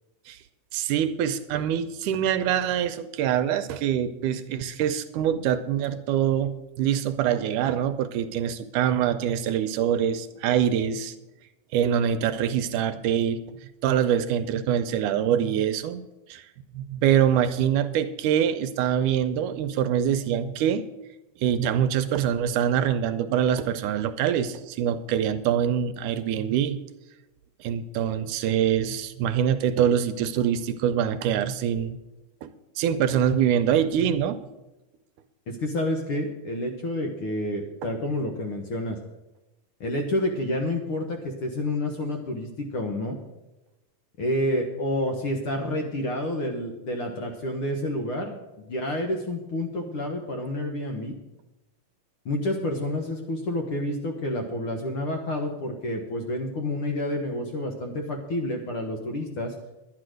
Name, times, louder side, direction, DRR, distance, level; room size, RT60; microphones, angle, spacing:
voice 1, 0.7-11.2 11.7-13.6 13.8-16.0 16.3-16.4 16.7-20.8 21.4-26.8 27.6-32.0 32.4-34.4 37.8-37.9, right 9 dB, 80° right, 11 dB, 2.1 m, -24 dB
voice 2, 35.5-39.0 39.8-43.2 44.2-48.3 48.7-51.1 52.2-59.5, left 1 dB, 60° left, 2 dB, 1.5 m, -29 dB
10.5 x 10.5 x 6.3 m, 0.99 s
omnidirectional pair, 3.7 m